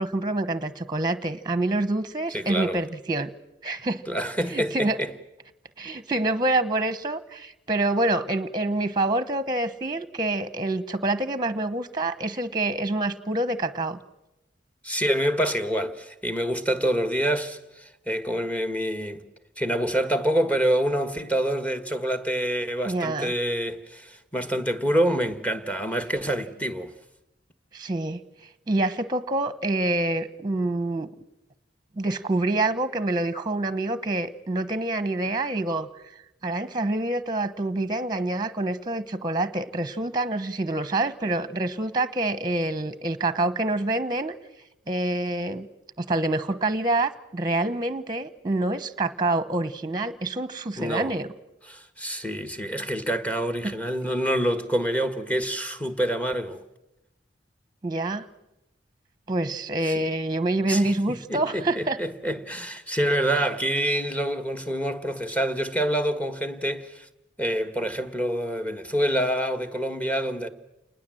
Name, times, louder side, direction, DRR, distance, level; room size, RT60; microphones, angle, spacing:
voice 1, 0.0-3.3 3.6-4.0 4.5-5.0 5.8-14.0 22.9-23.3 27.7-28.2 28.7-31.1 32.0-35.9 36.4-44.3 44.9-45.7 46.0-51.3 53.6-53.7 57.8-58.2 59.3-62.0, right 2 dB, 25° right, 1.0 m, -26 dB
voice 2, 2.3-2.8 4.1-5.1 14.8-19.2 19.6-26.9 50.8-51.2 51.7-56.6 59.9-60.0 60.6-60.9 61.3-67.1 67.4-70.5, right 1 dB, 10° left, 1.5 m, -26 dB
28.0 x 20.0 x 7.7 m
head